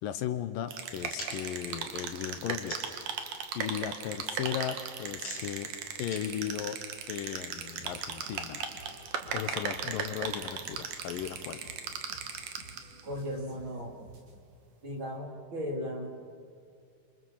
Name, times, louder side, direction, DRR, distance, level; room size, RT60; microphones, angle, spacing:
voice 1, 0.0-2.8 3.5-5.7 6.0-6.8 7.1-8.7 9.3-11.6, left 10 dB, 75° left, 11 dB, 2.5 m, -36 dB
sound 1, 0.7-13.0, right 6 dB, 65° right, 3.1 m, -38 dB
sound 2, 1.1-3.1 3.5-7.4, left 2 dB, 45° left, 7.3 m, -46 dB
sound 3, 7.5-14.4, right 1 dB, 85° right, 5.3 m, -53 dB
voice 2, 13.0-14.0 14.8-16.1, equal, 35° right, 0 dB, 3.8 m, -36 dB
28.5 x 26.5 x 7.4 m, 2.3 s
omnidirectional pair, 4.2 m